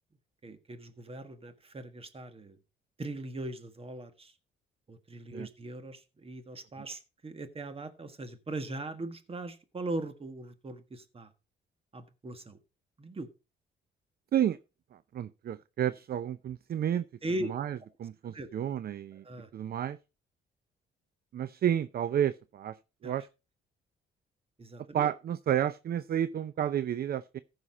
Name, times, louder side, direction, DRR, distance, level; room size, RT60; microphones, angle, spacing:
voice 1, 0.4-2.6 3.0-4.3 4.9-11.3 11.9-12.6 13.0-13.3 17.2-17.5 18.2-18.5 19.1-19.5 23.0-23.1 24.6-25.1, right 2 dB, 30° right, 1.6 m, -40 dB
voice 2, 14.9-17.1 17.4-19.2 19.5-20.0 21.3-23.3 24.9-27.4, right 10 dB, 50° right, 0.5 m, -31 dB
15.0 x 5.7 x 4.1 m
cardioid pair, 90°, 20 cm